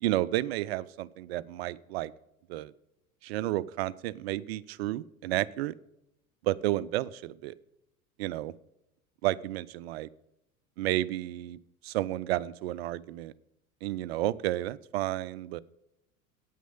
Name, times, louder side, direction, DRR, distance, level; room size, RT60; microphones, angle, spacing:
voice 1, 0.0-2.1 2.5-2.7 3.2-5.7 6.4-7.5 8.2-8.5 9.2-10.1 10.8-11.6 11.8-13.3 13.8-15.6, right 15 dB, 50° right, 18 dB, 0.4 m, -31 dB
8.7 x 6.1 x 7.9 m, 0.84 s
figure-of-eight pair, 75°, 42 cm